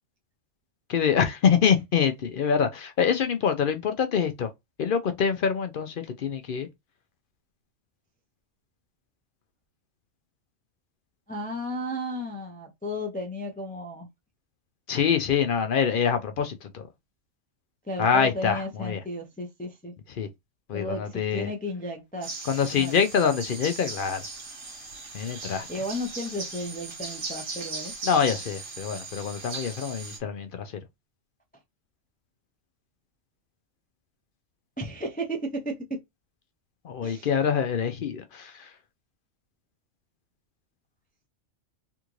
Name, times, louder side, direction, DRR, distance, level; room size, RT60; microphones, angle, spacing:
voice 1, 0.9-4.5 4.8-5.9 6.2-6.7 14.9-16.8 18.0-19.0 20.2-20.3 20.7-21.5 22.5-24.2 25.1-25.7 28.0-30.7 36.8-38.5, left 7 dB, 60° left, 0.6 m, -25 dB
voice 2, 11.3-14.1 17.9-19.9 20.7-22.3 22.8-23.0 25.4-27.9 34.8-36.0 37.0-37.3, equal, 10° left, 0.4 m, -34 dB
sound 1, 22.2-30.2, right 3 dB, 85° right, 1.9 m, -38 dB
3.5 x 2.4 x 3.0 m
omnidirectional pair, 1.3 m